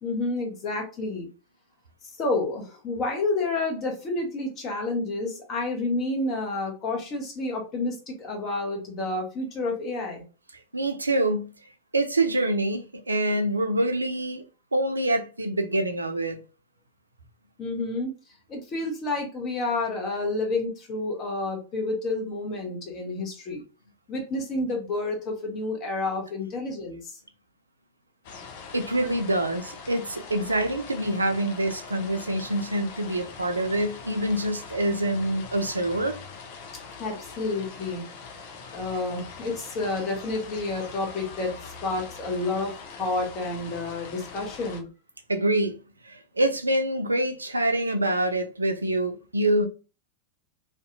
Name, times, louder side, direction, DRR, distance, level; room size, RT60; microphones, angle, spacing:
voice 1, 0.0-1.3 2.2-10.2 17.6-18.1 18.5-23.6 24.1-27.2 37.0-38.1 38.7-42.7 43.0-44.9, left 2 dB, 30° left, 1.0 m, -29 dB
voice 2, 10.7-11.5 11.9-14.4 14.7-16.4 28.7-36.2 45.3-45.8 46.0-49.7, right 1 dB, 80° right, 0.4 m, -26 dB
sound 1, 28.2-44.8, left 5 dB, 50° left, 0.6 m, -43 dB
2.6 x 2.2 x 2.5 m
figure-of-eight pair, 90°, 0 cm